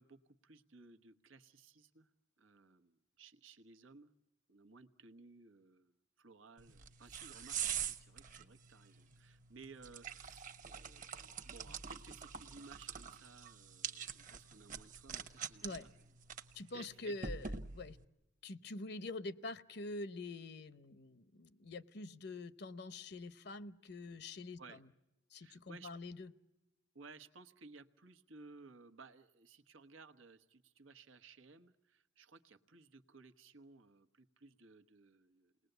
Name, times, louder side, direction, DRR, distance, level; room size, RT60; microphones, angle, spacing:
voice 1, 0.0-2.1 2.4-4.1 4.5-15.9 16.6-17.2 24.6-24.8 25.4-25.9 26.9-35.5, right 4 dB, 90° right, 9 dB, 1.2 m, -59 dB
sound 1, 6.6-18.0, right 7 dB, 40° right, 1.1 m, -45 dB
voice 2, 16.5-18.0 18.4-24.8 25.3-26.3, left 2 dB, 55° left, 14 dB, 0.8 m, -46 dB
29.0 x 20.0 x 8.0 m, 0.98 s
head